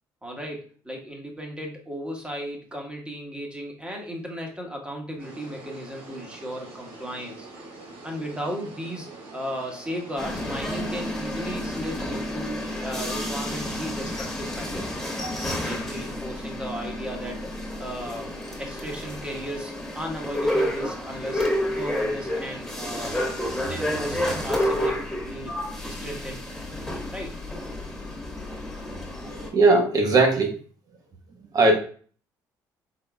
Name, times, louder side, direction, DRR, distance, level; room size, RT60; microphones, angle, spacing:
voice 1, 0.2-7.5 8.0-14.9 15.6-17.5 17.8-23.1 23.7-26.4 27.1-27.4, equal, 10° right, 0 dB, 1.3 m, -35 dB
sound 1, 5.2-10.5, right 2 dB, 80° right, 1.4 m, -44 dB
sound 2, 10.2-29.5, left 1 dB, 5° left, 1.5 m, -30 dB
voice 2, 29.2-30.6 31.5-31.8, right 3 dB, 50° right, 2 dB, 1.2 m, -20 dB
3.8 x 3.7 x 2.3 m, 0.42 s
supercardioid pair, 65°, 8 cm